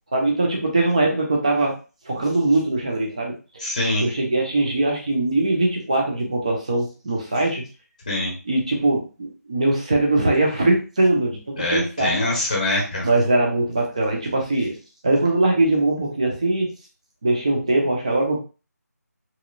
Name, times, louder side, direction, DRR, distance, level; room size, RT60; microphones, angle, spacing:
voice 1, 0.1-1.8 2.0-3.4 4.0-7.6 8.4-12.4 13.0-14.8 15.0-16.7 17.2-18.4, right 2 dB, 20° right, 0 dB, 0.6 m, -21 dB
voice 2, 3.6-4.1 8.1-8.3 11.6-13.1, left 1 dB, 25° left, -2 dB, 0.9 m, -23 dB
3.0 x 2.7 x 2.5 m, 0.33 s
figure-of-eight pair, 175°, 9 cm